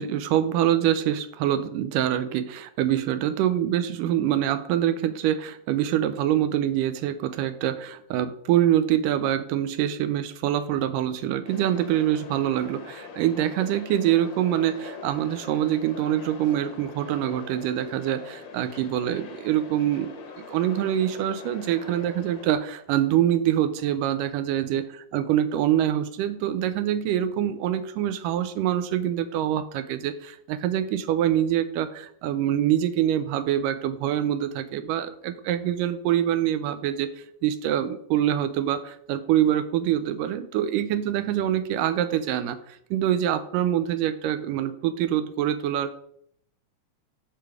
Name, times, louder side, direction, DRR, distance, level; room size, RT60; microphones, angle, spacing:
voice 1, 0.0-24.9 25.1-37.1 37.4-45.9, right 11 dB, 80° right, 11 dB, 2.2 m, -25 dB
sound 1, 11.5-22.5, left 5 dB, 60° left, 1.2 m, -43 dB
10.5 x 5.8 x 4.8 m, 0.68 s
omnidirectional pair, 3.9 m